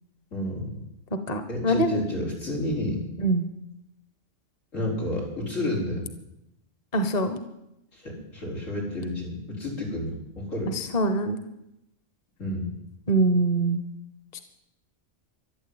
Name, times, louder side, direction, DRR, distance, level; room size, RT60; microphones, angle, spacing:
voice 1, 0.3-0.8 1.5-3.0 4.7-6.1 7.9-10.8 12.4-12.7, left 1 dB, 85° left, -1 dB, 5.3 m, -30 dB
voice 2, 1.3-2.0 3.2-3.4 6.9-7.4 10.7-11.4 13.1-13.8, right 2 dB, 35° left, 9 dB, 1.2 m, -23 dB
13.0 x 12.0 x 9.0 m, 0.86 s
omnidirectional pair, 1.3 m